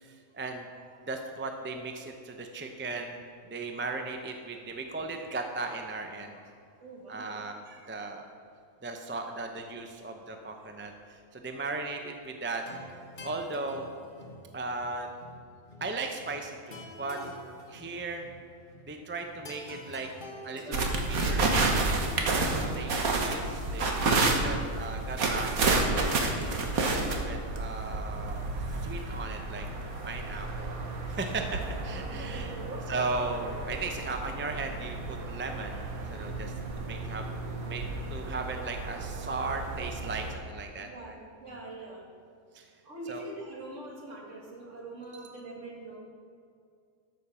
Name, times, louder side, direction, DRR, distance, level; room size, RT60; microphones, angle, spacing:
voice 1, 0.0-6.5 7.1-8.2 8.8-12.6 13.2-13.9 14.5-15.1 15.8-17.2 17.7-18.2 18.9-20.1 20.4-20.6 21.3-21.4 22.2-28.5 28.8-29.7 30.0-32.5 32.9-35.8 36.1-37.3 37.6-37.8 38.1-41.1 42.5-42.7 43.1-43.2, right 3 dB, 10° right, 4 dB, 0.5 m, -37 dB
voice 2, 6.8-7.4 20.6-20.8 32.1-32.8 40.7-42.1 42.8-46.0, right 2 dB, 60° right, -2 dB, 2.3 m, -43 dB
sound 1, 12.5-22.5, left 1 dB, 40° left, 1.4 m, -48 dB
sound 2, 20.7-40.3, right 3 dB, 85° right, 1.7 m, -31 dB
13.5 x 6.6 x 5.7 m, 2.3 s
omnidirectional pair, 1.5 m